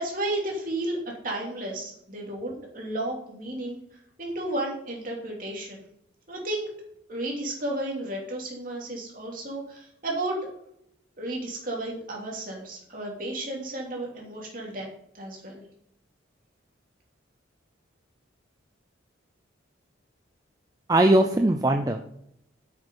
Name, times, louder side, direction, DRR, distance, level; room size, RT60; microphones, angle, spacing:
voice 1, 0.0-5.8 6.3-6.7 7.1-10.5 11.2-14.9 15.1-15.6, right 1 dB, 45° right, -2 dB, 2.9 m, -33 dB
voice 2, 20.9-22.0, right 1 dB, 20° right, 5 dB, 0.5 m, -20 dB
8.2 x 6.8 x 5.4 m, 0.74 s
head